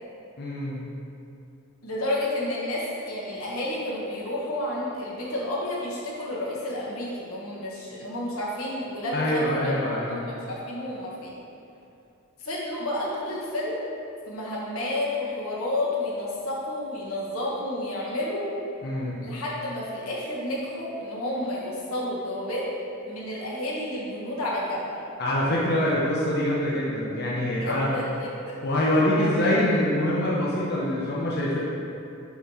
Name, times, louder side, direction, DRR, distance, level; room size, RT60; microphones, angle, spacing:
voice 1, 0.4-0.8 9.1-10.2 18.8-19.2 25.2-28.0 28.6-31.6, left 1 dB, 50° left, -6 dB, 0.8 m, -25 dB
voice 2, 1.8-11.4 12.4-13.8 14.3-18.5 19.2-22.7 23.1-25.0 27.5-28.6 29.2-29.3, left 1 dB, 90° left, -5 dB, 1.5 m, -31 dB
7.0 x 3.2 x 5.5 m, 2.7 s
head